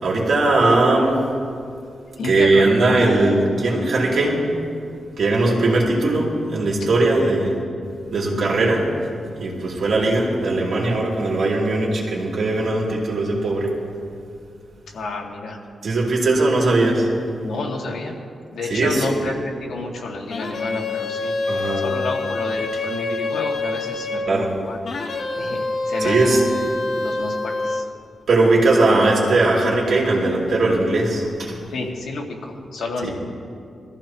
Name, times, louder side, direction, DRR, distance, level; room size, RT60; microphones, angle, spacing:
voice 1, 0.0-1.2 2.2-4.4 5.2-7.5 8.1-8.9 9.4-13.7 15.8-17.1 18.7-19.2 21.5-21.8 24.3-24.5 26.0-26.4 28.3-31.5, right 2 dB, 60° right, -3 dB, 2.9 m, -19 dB
voice 2, 2.2-3.0 14.9-15.6 17.4-18.2 18.5-24.8 25.3-26.5 26.9-27.9 31.7-33.1, left 3 dB, 80° left, -1 dB, 2.0 m, -30 dB
sound 1, 20.3-24.3 24.8-27.9, left 3 dB, 50° left, 1.0 m, -26 dB
22.5 x 14.5 x 3.0 m, 2.3 s
wide cardioid pair, 160°, 0 cm